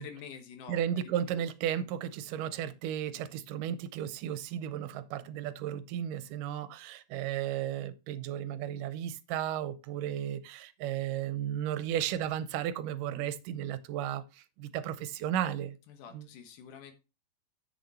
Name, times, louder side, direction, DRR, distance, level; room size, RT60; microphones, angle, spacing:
voice 1, 0.0-0.8 1.3-1.4 15.9-16.9, left 8 dB, 70° left, 2.6 m, -47 dB
voice 2, 0.7-15.8 16.1-16.3, right 10 dB, 80° right, 2.2 m, -34 dB
8.1 x 6.6 x 4.2 m
omnidirectional pair, 3.9 m